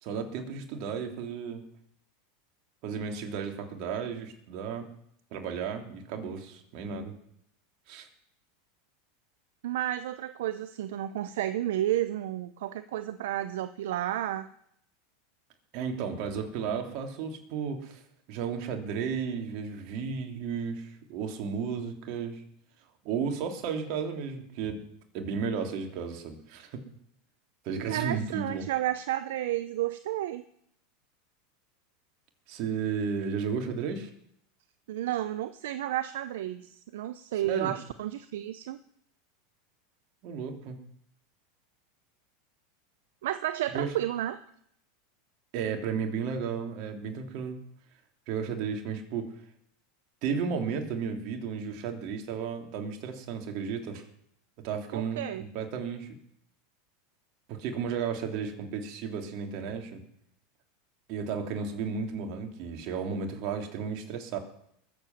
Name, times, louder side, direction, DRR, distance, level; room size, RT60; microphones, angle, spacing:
voice 1, 0.0-1.6 2.8-4.9 5.3-7.1 7.9-8.1 15.7-18.0 18.3-22.4 23.0-24.8 25.1-26.8 27.6-28.7 32.5-34.1 37.3-37.7 40.2-40.8 43.7-43.9 45.5-47.6 48.3-49.3 50.2-54.1 54.6-56.1 57.5-60.0 61.1-64.4, right 6 dB, 55° right, 3 dB, 3.2 m, -33 dB
voice 2, 9.6-14.5 27.9-30.4 34.9-38.8 43.2-44.4 54.9-55.4, right 13 dB, 75° right, 12 dB, 0.7 m, -32 dB
21.0 x 7.9 x 7.4 m, 0.72 s
hypercardioid pair, 105°, 0 cm